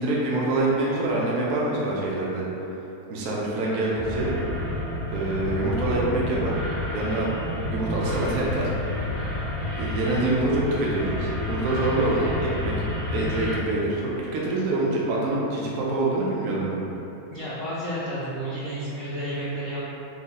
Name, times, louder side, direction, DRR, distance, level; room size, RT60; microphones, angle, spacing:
voice 1, 0.0-2.5 3.1-4.3 5.1-6.5 6.9-7.3 7.6-8.7 9.7-12.7 13.1-16.8, right 2 dB, 65° right, -5 dB, 0.9 m, -25 dB
sound 1, 3.9-13.5, left 1 dB, 85° right, 1.5 m, -30 dB
voice 2, 17.3-19.8, equal, 55° left, -10 dB, 0.6 m, -31 dB
3.8 x 2.1 x 4.0 m, 3.0 s
omnidirectional pair, 1.7 m